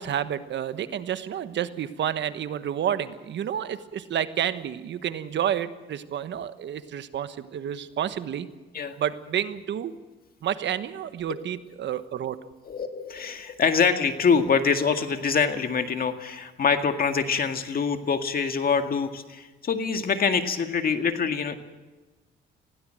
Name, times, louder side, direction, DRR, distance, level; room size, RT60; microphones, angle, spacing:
voice 1, 0.0-8.5 9.0-9.9 10.4-12.4, right 9 dB, 65° right, 11 dB, 1.3 m, -30 dB
voice 2, 12.6-21.5, left 5 dB, 50° left, 7 dB, 2.0 m, -25 dB
20.5 x 16.5 x 7.7 m, 1.2 s
cardioid pair, 90°, 20 cm